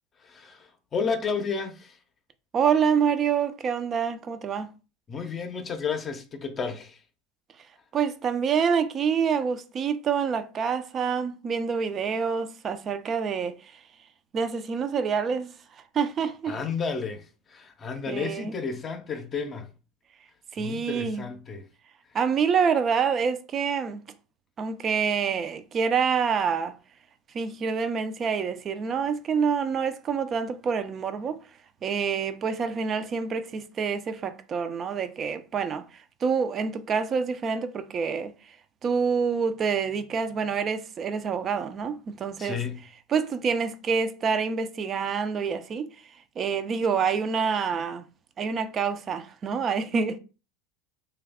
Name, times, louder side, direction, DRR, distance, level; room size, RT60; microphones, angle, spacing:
voice 1, 0.2-2.0 5.1-7.0 16.5-19.7 20.6-21.7 42.4-42.8, left 5 dB, 30° left, 0.6 m, -32 dB
voice 2, 2.5-4.7 7.9-13.8 14.3-15.5 15.9-16.6 18.1-18.5 20.5-21.3 22.1-24.0 24.6-26.7 27.3-31.4 31.8-38.3 38.8-42.6 43.1-45.9 46.4-48.0 48.4-50.2, right 6 dB, 35° right, 0.4 m, -27 dB
3.2 x 2.3 x 3.5 m
supercardioid pair, 105°, 0 cm